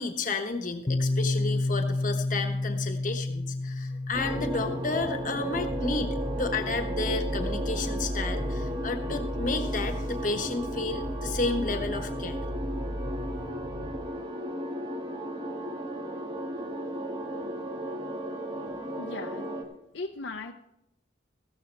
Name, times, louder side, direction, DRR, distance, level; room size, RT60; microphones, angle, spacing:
voice 1, 0.0-12.4, left 3 dB, 45° left, 6 dB, 1.1 m, -32 dB
Piano, 0.9-8.3, left 2 dB, 25° left, 0.4 m, -32 dB
sound 1, 4.1-19.6, equal, 30° right, 1.8 m, -35 dB
sound 2, 4.1-14.0, equal, 65° right, 2.3 m, -35 dB
voice 2, 18.6-19.5 19.9-20.5, left 3 dB, 70° left, 4 dB, 0.6 m, -38 dB
15.0 x 13.0 x 3.4 m, 0.80 s
head